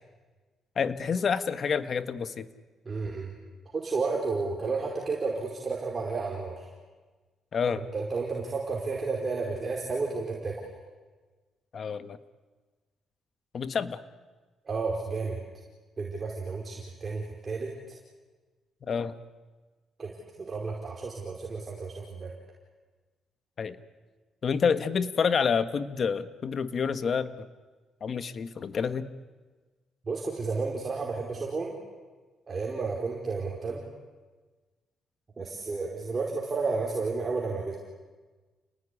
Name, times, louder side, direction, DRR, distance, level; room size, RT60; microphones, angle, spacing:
voice 1, 0.7-2.5 7.5-7.9 11.7-12.2 13.5-14.0 18.8-19.1 23.6-23.8 24.4-27.5 28.0-29.1, left 6 dB, 50° left, 11 dB, 1.5 m, -28 dB
voice 2, 2.8-3.3 3.7-6.7 7.7-10.6 14.6-15.4 16.0-17.7 20.0-22.3 30.0-31.7 32.5-33.8 35.4-37.8, right 4 dB, 35° right, -1 dB, 4.9 m, -32 dB
30.0 x 19.5 x 10.0 m, 1.3 s
cardioid pair, 90°, 0 cm